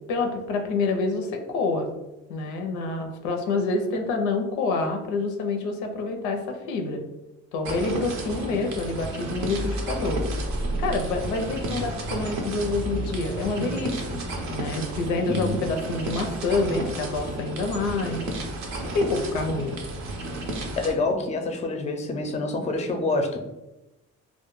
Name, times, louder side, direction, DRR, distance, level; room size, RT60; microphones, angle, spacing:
voice 1, 0.1-1.9 2.3-7.0 7.5-10.2 10.8-14.2 14.5-18.2 18.8-19.8, left 3 dB, 90° left, 4 dB, 0.4 m, -27 dB
sound 1, 7.6-20.9, right 1 dB, 70° right, 0.6 m, -33 dB
sound 2, 9.0-14.3, right 2 dB, 30° right, 0.5 m, -33 dB
voice 2, 15.3-15.6 20.8-23.4, left 2 dB, 25° left, 4 dB, 0.4 m, -27 dB
2.2 x 2.1 x 3.0 m, 0.99 s
supercardioid pair, 75°, 29 cm